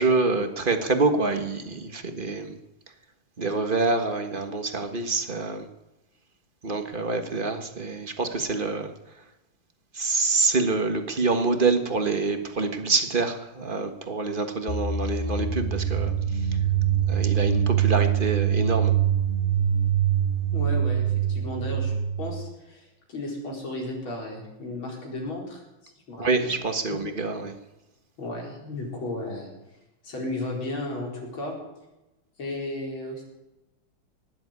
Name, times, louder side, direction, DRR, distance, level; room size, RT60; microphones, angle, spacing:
voice 1, 0.0-2.6 3.4-5.7 6.6-8.9 9.9-16.1 17.1-18.9 26.2-27.5, right 3 dB, 30° right, 7 dB, 1.3 m, -26 dB
sound 1, 14.7-22.4, right 9 dB, 35° left, 1.2 m, -24 dB
voice 2, 20.5-21.9 22.2-26.5 26.9-27.0 28.2-29.5 30.0-31.6 32.4-33.2, left 2 dB, 70° left, -1 dB, 5.3 m, -34 dB
19.0 x 7.9 x 9.6 m, 0.96 s
omnidirectional pair, 2.3 m